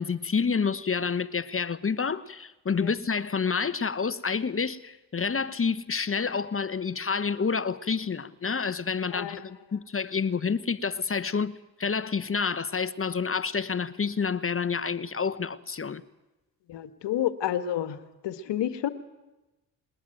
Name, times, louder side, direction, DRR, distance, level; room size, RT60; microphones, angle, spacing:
voice 1, 0.0-11.5 11.8-16.0, left 5 dB, 30° left, 1.1 m, -28 dB
voice 2, 9.1-9.4 16.7-18.0 18.2-18.9, left 11 dB, 65° left, 1.5 m, -29 dB
20.5 x 20.0 x 9.2 m
hypercardioid pair, 40°, 47 cm